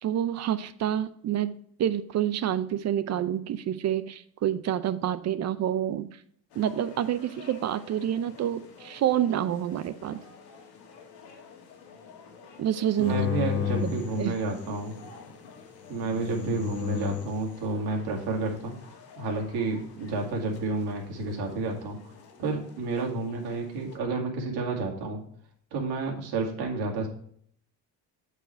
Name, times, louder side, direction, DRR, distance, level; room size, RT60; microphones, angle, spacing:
voice 1, 0.0-6.2 6.6-10.2 12.6-13.2 13.8-13.9 14.2-14.4, right 10 dB, 40° right, 14 dB, 0.5 m, -28 dB
sound 1, 6.5-24.0, left 5 dB, 75° left, 1.7 m, -51 dB
sound 2, 13.0-14.9 15.9-17.4, left 9 dB, 35° left, 0.9 m, -32 dB
voice 2, 13.0-15.0 15.9-18.7 19.2-22.0 22.4-25.2 25.7-27.1, right 3 dB, 70° right, 1 dB, 2.3 m, -30 dB
7.9 x 4.9 x 4.5 m, 0.62 s
cardioid pair, 130°, 40 cm